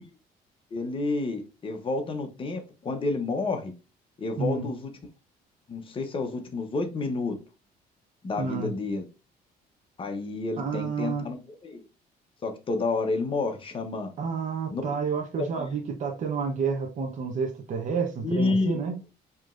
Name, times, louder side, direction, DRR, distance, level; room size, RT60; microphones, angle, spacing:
voice 1, 0.7-3.7 4.2-4.9 5.7-7.4 8.2-9.1 10.0-11.8 12.4-14.1 14.7-15.0 15.4-15.7 18.2-18.8, left 3 dB, 30° left, 1.0 m, -30 dB
voice 2, 4.4-4.7 8.3-8.7 10.6-11.3 14.2-18.9, right 5 dB, 45° right, 0.9 m, -30 dB
5.0 x 3.0 x 2.5 m
cardioid pair, 110°, 17 cm